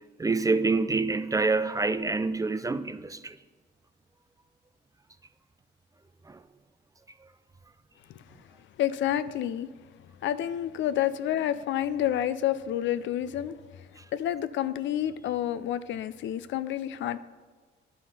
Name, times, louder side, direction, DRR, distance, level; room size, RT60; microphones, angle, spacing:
voice 1, 0.2-3.4 6.3-6.4, right 3 dB, 15° right, 0.4 m, -26 dB
voice 2, 8.8-9.7 10.2-13.9 14.1-17.2, left 11 dB, 70° left, 0.4 m, -29 dB
11.0 x 5.7 x 4.1 m
cardioid pair, 90°, 20 cm